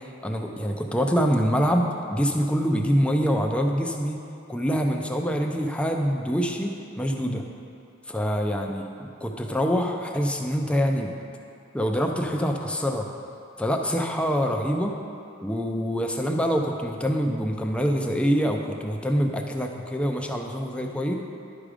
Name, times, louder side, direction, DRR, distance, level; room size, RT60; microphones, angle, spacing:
voice 1, 0.2-4.2 4.5-7.4 8.1-11.1 11.7-13.1 13.6-15.0 15.4-21.2, equal, 5° left, 2 dB, 0.5 m, -25 dB
11.5 x 5.0 x 4.9 m, 2.6 s
head